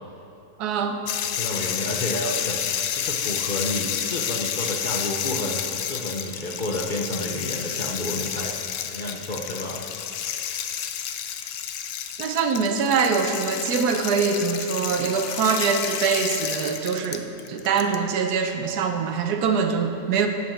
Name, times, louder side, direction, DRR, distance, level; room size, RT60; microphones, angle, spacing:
voice 1, 0.6-1.0 12.2-20.3, right 5 dB, 80° right, 6 dB, 1.3 m, -24 dB
sound 1, 1.1-18.0, left 9 dB, 85° left, 1.1 m, -30 dB
voice 2, 1.3-9.8, left 1 dB, 50° left, 0 dB, 0.6 m, -30 dB
8.7 x 7.3 x 6.4 m, 2.8 s
omnidirectional pair, 1.7 m